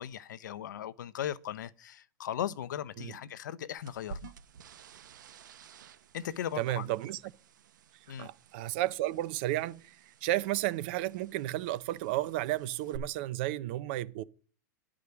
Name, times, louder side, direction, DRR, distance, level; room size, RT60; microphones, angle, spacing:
voice 1, 0.0-4.3 6.1-6.9 8.1-8.3, left 10 dB, 80° left, 0.7 m, -38 dB
sound 1, 3.8-13.0, right 6 dB, 85° right, 0.9 m, -53 dB
voice 2, 6.6-7.2 8.2-14.2, right 16 dB, 35° right, 0.5 m, -33 dB
11.0 x 5.0 x 6.9 m
supercardioid pair, 170°, 10 cm